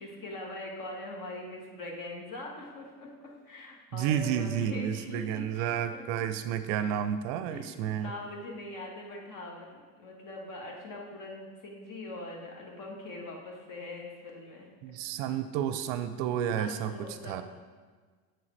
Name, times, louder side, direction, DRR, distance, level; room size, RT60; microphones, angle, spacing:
voice 1, 0.0-6.0 6.7-7.0 7.5-9.7 10.0-14.7 16.6-17.4, left 2 dB, 45° left, -1 dB, 1.6 m, -42 dB
voice 2, 3.9-8.1 14.8-17.4, right 9 dB, 60° right, 10 dB, 0.5 m, -31 dB
7.7 x 4.7 x 3.2 m, 1.5 s
hypercardioid pair, 85°, 43 cm